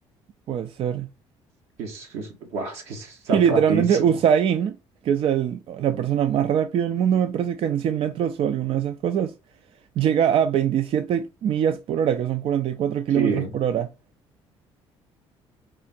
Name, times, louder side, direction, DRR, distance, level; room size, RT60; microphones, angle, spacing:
voice 1, 0.5-1.1 3.3-4.8 5.0-9.3 10.0-13.9, right 8 dB, 55° right, 0.4 m, -22 dB
voice 2, 1.8-4.2 13.1-13.5, right 4 dB, 85° right, 1.6 m, -28 dB
4.7 x 2.5 x 4.2 m
supercardioid pair, 85°, 11 cm